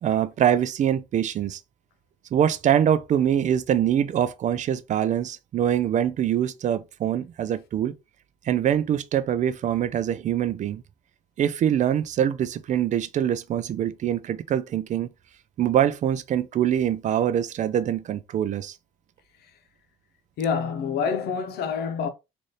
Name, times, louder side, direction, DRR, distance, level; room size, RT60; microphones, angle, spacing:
voice 1, 0.0-1.6 2.3-7.9 8.5-10.8 11.4-15.1 15.6-18.8, right 10 dB, 45° right, 0.4 m, -24 dB
voice 2, 20.4-22.1, left 6 dB, 70° left, 0.8 m, -27 dB
4.0 x 2.6 x 3.2 m
cardioid pair, 110°, 17 cm